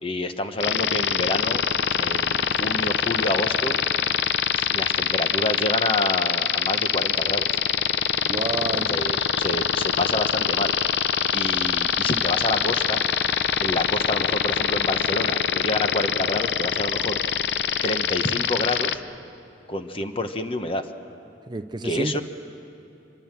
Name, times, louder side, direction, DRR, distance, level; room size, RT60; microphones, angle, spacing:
voice 1, 0.0-1.6 1.9-3.8 4.5-7.5 8.7-10.7 11.3-13.0 13.6-17.2 17.8-19.0 19.7-20.9 21.8-22.2, left 2 dB, 30° left, 8 dB, 1.1 m, -28 dB
sound 1, 0.6-19.0, left 8 dB, 70° left, 0.6 m, -23 dB
voice 2, 8.2-8.9 21.5-22.2, right 3 dB, 25° right, 10 dB, 0.5 m, -29 dB
25.0 x 22.0 x 7.5 m, 2.9 s
head